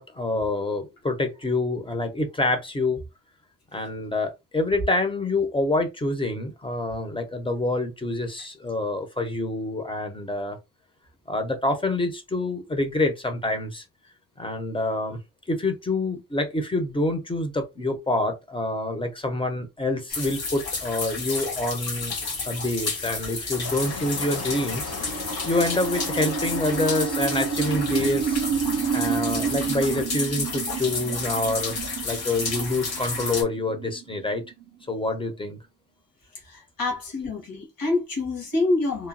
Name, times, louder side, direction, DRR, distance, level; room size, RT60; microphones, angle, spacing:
voice 1, 0.0-3.0 3.7-10.6 11.3-13.8 14.4-15.2 15.5-22.1 22.4-28.4 28.9-31.8 32.0-34.4 34.9-35.6, left 2 dB, 15° left, 0.6 m, -27 dB
sound 1, 20.1-33.4, left 4 dB, 90° left, 1.3 m, -31 dB
sound 2, 23.2-35.3, right 7 dB, 55° right, 0.5 m, -31 dB
sound 3, 23.6-30.0, left 4 dB, 45° left, 0.8 m, -37 dB
voice 2, 36.5-39.1, left 2 dB, 70° left, 1.5 m, -26 dB
3.0 x 2.2 x 2.5 m
wide cardioid pair, 130°, 36 cm